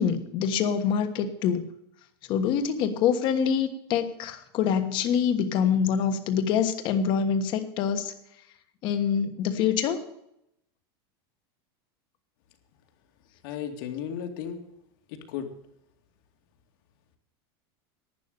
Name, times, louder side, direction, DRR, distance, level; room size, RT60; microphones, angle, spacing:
voice 1, 0.0-1.6 2.3-8.1 8.8-10.0, left 7 dB, 35° left, 8 dB, 1.4 m, -25 dB
voice 2, 13.4-14.6 15.1-15.5, left 8 dB, 60° left, 5 dB, 2.3 m, -34 dB
11.5 x 9.3 x 6.9 m, 0.79 s
supercardioid pair, 165°, 13 cm